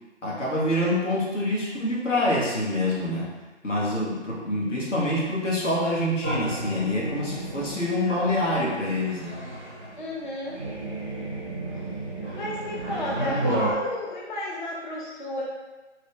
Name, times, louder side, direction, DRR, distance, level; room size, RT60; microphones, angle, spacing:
voice 1, 0.2-3.3 3.6-9.4, left 1 dB, 85° left, -5 dB, 1.4 m, -26 dB
sound 1, 6.2-13.7, right 1 dB, 10° left, 0.8 m, -32 dB
voice 2, 10.0-10.6 12.3-15.4, left 1 dB, 40° left, -4 dB, 0.5 m, -33 dB
3.1 x 2.7 x 3.3 m, 1.2 s
figure-of-eight pair, 155°, 36 cm